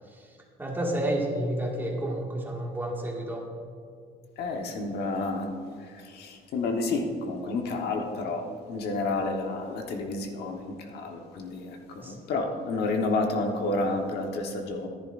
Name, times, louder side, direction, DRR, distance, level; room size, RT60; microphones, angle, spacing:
voice 1, 0.6-3.4 12.0-12.1, right 1 dB, 10° right, -2 dB, 1.9 m, -30 dB
voice 2, 4.4-5.5 5.8-14.9, left 3 dB, 75° left, 3 dB, 1.2 m, -30 dB
14.5 x 10.5 x 2.5 m, 2.2 s
cardioid pair, 110°, 17 cm